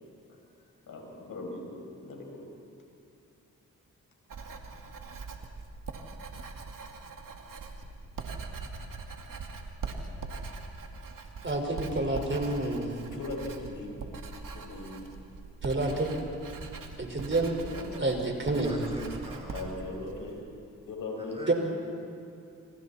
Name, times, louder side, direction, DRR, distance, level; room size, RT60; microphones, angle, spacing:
voice 1, 0.9-2.5 13.1-14.0 14.5-15.0 17.6-17.9 19.5-20.4 20.9-21.4, left 2 dB, 90° left, 0 dB, 5.4 m, -39 dB
Writing, 4.3-20.4, right 4 dB, 75° right, 2.3 m, -42 dB
voice 2, 11.4-12.9 15.6-16.1 17.0-17.6 18.0-18.8 21.5-21.6, right 2 dB, 35° right, 2 dB, 5.1 m, -28 dB
voice 3, 18.5-19.7 21.2-21.5, right 1 dB, 20° right, -2 dB, 5.7 m, -43 dB
28.0 x 27.5 x 4.3 m, 2.7 s
cardioid pair, 50°, 33 cm